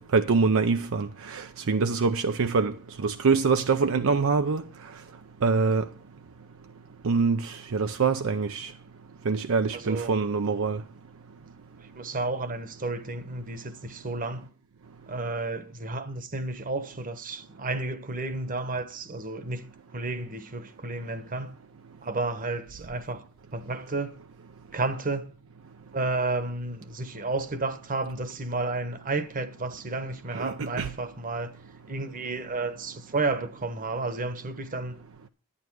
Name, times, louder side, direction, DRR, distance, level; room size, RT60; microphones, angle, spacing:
voice 1, 0.0-2.7 3.0-4.6 5.4-5.8 7.0-8.7 9.3-10.8 30.3-30.9, right 4 dB, 65° right, 0.5 m, -24 dB
voice 2, 9.7-10.1 12.0-14.5 15.1-21.6 22.0-23.2 23.5-24.1 24.7-25.3 25.9-31.5 31.9-35.0, right 3 dB, 40° right, 1.1 m, -32 dB
11.5 x 9.3 x 4.6 m
head